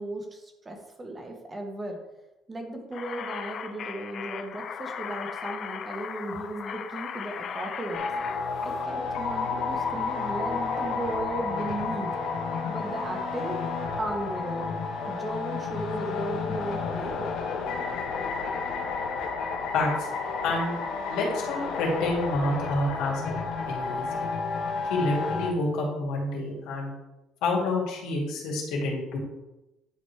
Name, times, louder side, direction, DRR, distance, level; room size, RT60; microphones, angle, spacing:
voice 1, 0.0-2.0 2.5-8.0 8.6-12.1 12.7-13.6 14.0-14.7 15.1-17.2, right 2 dB, 15° right, 2 dB, 1.0 m, -36 dB
sound 1, 2.9-8.8, left 7 dB, 40° left, 0.4 m, -37 dB
sound 2, 7.9-25.5, left 4 dB, 60° left, 1.0 m, -31 dB
voice 2, 19.7-20.1 20.4-20.8 21.1-23.2 23.7-24.3 24.9-26.9 27.4-29.2, left 2 dB, 90° left, -2 dB, 2.5 m, -28 dB
9.9 x 5.1 x 3.3 m, 0.98 s
cardioid pair, 175°, 0 cm